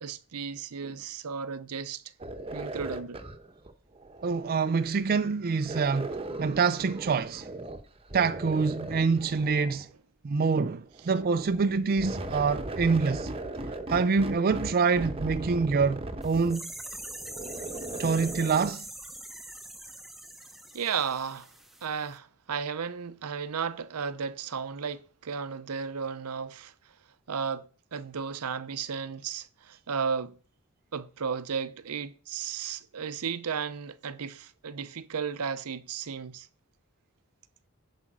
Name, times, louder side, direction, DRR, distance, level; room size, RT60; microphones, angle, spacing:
voice 1, 0.0-2.0 2.5-3.2 20.7-21.5 21.8-26.7 27.3-30.4 30.9-36.5, right 6 dB, 80° right, 0.7 m, -34 dB
sound 1, 2.2-5.0 5.6-7.8 8.1-9.9 10.9-18.7, right 2 dB, 25° right, 1.0 m, -38 dB
voice 2, 4.2-6.1 6.4-7.5 8.1-9.9 10.2-13.3 13.9-16.7 18.0-18.9, right 5 dB, 40° right, 0.4 m, -26 dB
sound 2, 16.2-21.9 22.1-22.2, right 1 dB, ahead, 0.8 m, -43 dB
10.0 x 5.1 x 6.0 m
head